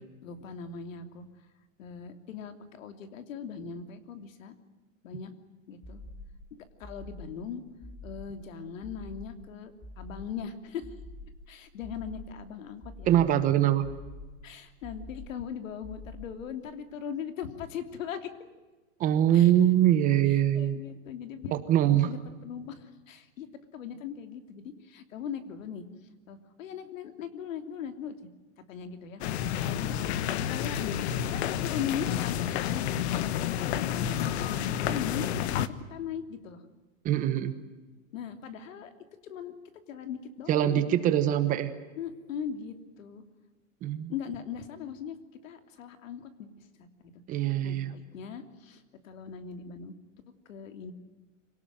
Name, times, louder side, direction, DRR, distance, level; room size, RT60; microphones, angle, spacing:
voice 1, 0.2-1.2 1.8-4.5 5.0-5.3 5.7-6.0 6.6-7.6 8.0-10.9 11.5-13.1 14.4-18.3 19.3-19.5 20.5-21.6 21.9-23.5 23.7-25.8 26.3-28.2 28.7-29.2 29.6-30.0 30.4-31.0 31.3-33.2 33.8-35.6 35.9-36.6 38.1-38.9 39.2-40.9 42.0-43.2 44.1-45.2 45.4-46.9 47.3-49.9 50.5-50.9, left 7 dB, 70° left, 9 dB, 3.1 m, -39 dB
sound 1, 5.8-6.5 6.8-7.5 7.8-8.4 8.8-9.5 9.8-10.4 10.8-11.5 11.8-12.4 12.8-13.5 13.8-14.5 14.8-15.5 15.8-16.5, left 1 dB, 15° left, 3.6 m, -46 dB
voice 2, 13.1-13.8 19.0-20.8 21.7-22.1 37.0-37.6 40.5-41.7 43.8-44.1 47.3-47.9, right 11 dB, 20° right, 11 dB, 1.0 m, -23 dB
sound 2, 29.2-35.7, left 10 dB, 55° left, 1.3 m, -30 dB
26.0 x 18.5 x 9.2 m, 1.2 s
supercardioid pair, 170°, 40 cm